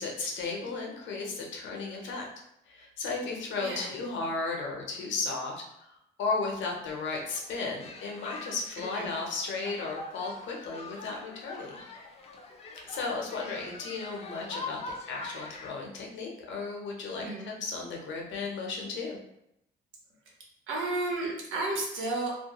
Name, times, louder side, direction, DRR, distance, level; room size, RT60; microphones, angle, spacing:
voice 1, 0.0-2.3 2.7-11.8 12.9-19.2, left 3 dB, 70° left, 0 dB, 0.6 m, -35 dB
voice 2, 3.6-3.9 8.8-9.1 17.2-17.5 20.7-22.3, right 2 dB, 80° right, -2 dB, 0.8 m, -32 dB
sound 1, 6.8-15.7, left 3 dB, 30° left, 0.4 m, -44 dB
2.2 x 2.1 x 2.8 m, 0.79 s
cardioid pair, 90°, 20 cm